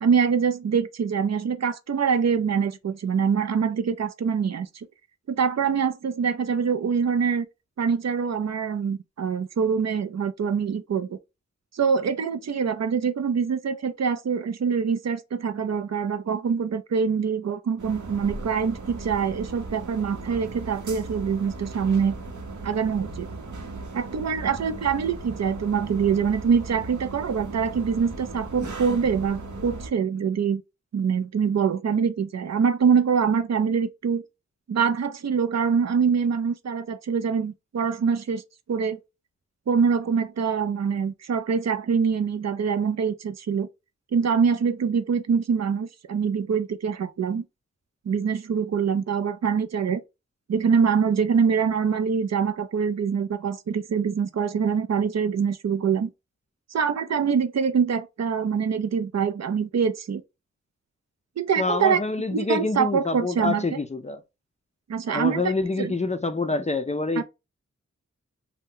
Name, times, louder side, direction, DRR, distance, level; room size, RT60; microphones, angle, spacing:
voice 1, 0.0-4.9 5.3-7.5 7.8-11.2 11.7-22.2 22.6-23.3 23.9-30.6 30.9-34.2 34.7-38.4 38.7-39.0 39.7-43.7 44.1-47.4 48.1-50.0 50.5-56.1 56.7-60.2 61.4-62.0 62.3-63.7 64.9-65.5 65.8-65.9 67.2-67.3, right 6 dB, 60° right, 0.4 m, -24 dB
sound 1, 17.8-29.9, right 2 dB, 75° right, 0.8 m, -37 dB
voice 2, 61.6-64.2 65.1-67.2, left 3 dB, 25° left, 0.3 m, -26 dB
2.7 x 2.1 x 3.6 m
wide cardioid pair, 60°, 30 cm